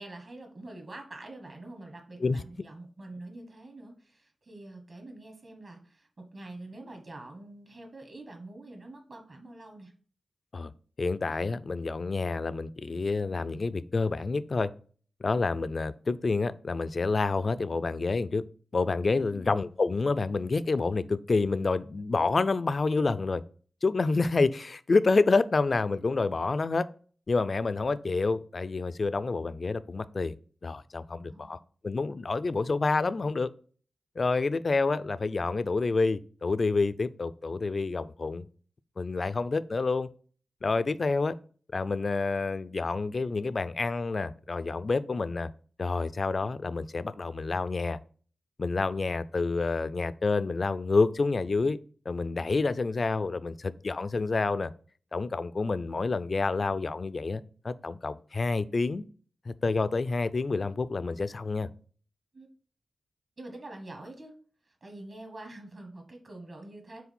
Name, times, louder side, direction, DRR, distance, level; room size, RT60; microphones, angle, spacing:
voice 1, 0.0-9.9 19.3-19.6 31.3-31.6 62.3-62.5 63.4-64.3 64.7-67.0, right 2 dB, 45° right, 1.3 m, -46 dB
voice 2, 11.0-14.7 15.2-18.4 18.7-23.4 23.8-26.9 27.3-30.4 30.6-31.6 31.8-33.5 34.2-38.5 39.0-40.1 40.6-41.4 41.7-45.5 45.8-48.0 48.6-51.8 52.1-54.7 55.1-59.0 59.5-61.7, left 3 dB, 40° left, 0.3 m, -28 dB
4.8 x 3.8 x 5.3 m
wide cardioid pair, 135°, 0 cm